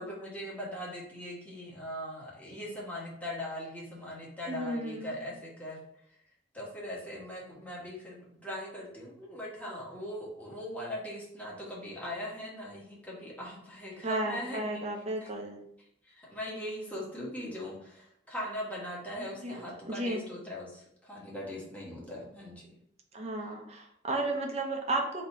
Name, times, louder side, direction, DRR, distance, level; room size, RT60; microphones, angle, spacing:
voice 1, 0.0-5.8 6.5-14.7 16.1-22.7, left 1 dB, 10° left, -5 dB, 1.5 m, -40 dB
voice 2, 4.5-5.2 14.0-15.7 19.2-20.3 23.1-25.2, right 2 dB, 35° right, 1 dB, 0.9 m, -34 dB
3.9 x 3.1 x 4.3 m, 0.69 s
head